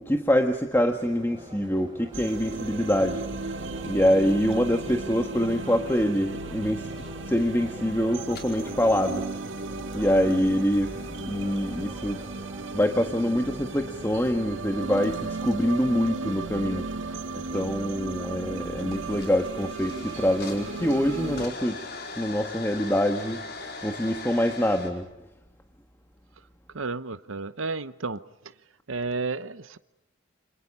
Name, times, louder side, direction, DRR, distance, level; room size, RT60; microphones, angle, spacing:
voice 1, 0.0-9.4 9.9-12.2 12.7-17.1 17.5-21.8 22.2-23.4 23.8-25.1, equal, 10° left, 1.5 m, -25 dB
sound 1, 0.9-18.7, right 1 dB, 20° right, 7.4 m, -46 dB
sound 2, 2.1-21.5, right 3 dB, 70° right, 1.8 m, -35 dB
sound 3, 6.8-7.7 8.3-8.4 9.7-9.9 10.4-10.5 11.0-11.8 12.3-12.9 14.2-14.3 14.9-15.0 15.4-16.5 17.5-17.8 18.3-18.4 18.8-24.9, left 3 dB, 55° left, 4.7 m, -41 dB
voice 2, 26.7-28.2 28.9-29.8, right 3 dB, 85° right, 0.9 m, -32 dB
30.0 x 26.5 x 5.5 m
head